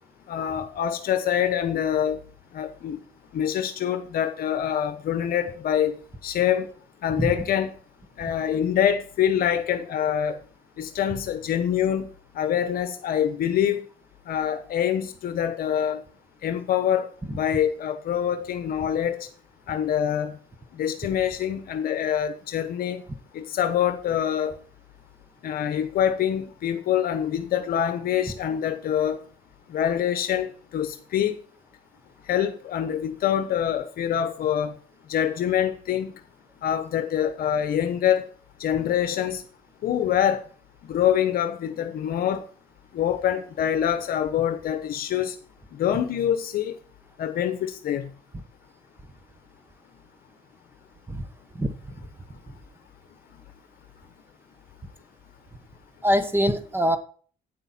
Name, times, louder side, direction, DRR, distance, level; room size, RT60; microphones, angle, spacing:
voice 1, 0.3-2.2 2.5-3.0 3.3-6.7 7.0-7.7 8.2-10.4 10.8-12.1 12.3-13.9 14.2-16.0 16.4-19.3 19.7-20.3 20.7-23.0 23.3-24.5 25.4-29.2 29.7-31.4 32.2-34.7 35.1-36.1 36.6-38.3 38.6-39.4 39.8-40.4 40.8-42.4 42.9-45.4 45.7-46.8 47.2-48.1, left 9 dB, 60° left, 9 dB, 1.0 m, -25 dB
voice 2, 56.0-57.0, equal, 15° right, 10 dB, 1.3 m, -23 dB
9.4 x 7.8 x 4.4 m, 0.43 s
cardioid pair, 110°, 17 cm